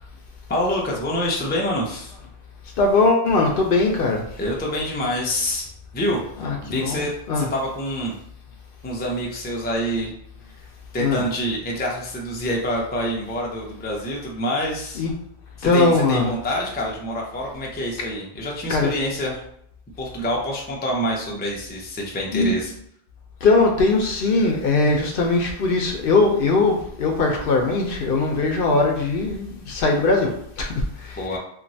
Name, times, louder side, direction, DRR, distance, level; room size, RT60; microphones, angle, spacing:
voice 1, 0.5-2.1 4.4-5.7 5.9-6.2 6.6-7.1 7.4-8.1 8.8-10.1 10.9-15.0 15.6-19.4 20.0-22.7 31.2-31.4, equal, 15° left, -2 dB, 0.3 m, -26 dB
voice 2, 2.8-4.2 6.4-7.5 11.0-11.2 15.0-15.1 15.6-16.3 18.7-18.9 22.3-22.5 23.4-31.2, left 3 dB, 65° left, 2 dB, 0.7 m, -20 dB
3.0 x 2.4 x 2.6 m, 0.69 s
omnidirectional pair, 1.1 m